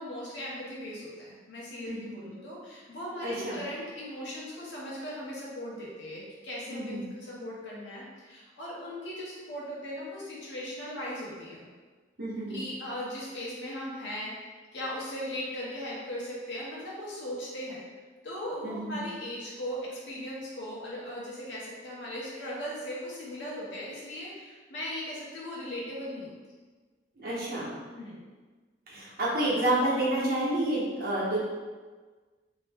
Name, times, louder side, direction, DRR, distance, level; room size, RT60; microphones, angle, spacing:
voice 1, 0.0-11.7 12.5-17.8 18.2-26.3 27.9-28.2, equal, 75° left, -5 dB, 0.9 m, -38 dB
voice 2, 3.2-3.6 6.7-7.0 12.2-12.6 18.6-19.0 27.2-27.7 28.9-31.4, right 1 dB, 55° right, -6 dB, 0.8 m, -29 dB
2.7 x 2.1 x 3.3 m, 1.4 s
head